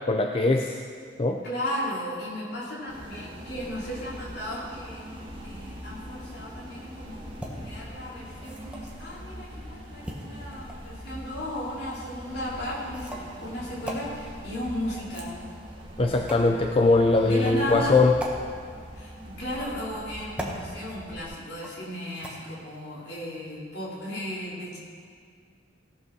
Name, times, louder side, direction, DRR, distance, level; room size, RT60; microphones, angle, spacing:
voice 1, 0.1-0.8 1.2-1.4 16.0-18.1, left 3 dB, 30° left, 4 dB, 0.4 m, -21 dB
voice 2, 1.4-5.0 5.4-7.2 7.6-15.4 17.2-18.0 18.9-24.8, equal, 60° left, -7 dB, 3.6 m, -35 dB
sound 1, 2.9-21.2, equal, 25° right, 1.8 m, -42 dB
sound 2, 7.3-7.5 8.4-9.0 10.0-10.9 11.9-12.1 12.9-13.3 13.8-14.0 15.0-15.6 16.3-16.5 17.3-17.6 18.2-18.4 19.4-19.9 20.4-20.6 21.6-21.9 22.2-22.3, equal, 5° right, 1.1 m, -38 dB
16.5 x 5.6 x 6.2 m, 2.2 s
head